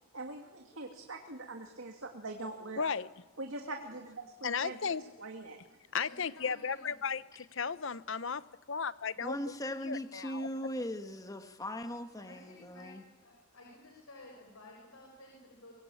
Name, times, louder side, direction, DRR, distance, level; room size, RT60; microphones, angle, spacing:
voice 1, 0.1-2.9 3.4-4.9 5.2-5.6, right 2 dB, 65° right, 3 dB, 2.5 m, -43 dB
voice 2, 2.8-3.1 4.4-5.0 5.9-9.6 9.8-10.5, left 6 dB, 60° left, 16 dB, 0.8 m, -35 dB
voice 3, 4.4-5.1 6.0-6.9 12.2-15.7, left 2 dB, 80° left, 0 dB, 6.0 m, -54 dB
voice 4, 9.2-13.0, equal, 15° left, 8 dB, 1.4 m, -39 dB
24.0 x 23.5 x 8.6 m, 1.2 s
head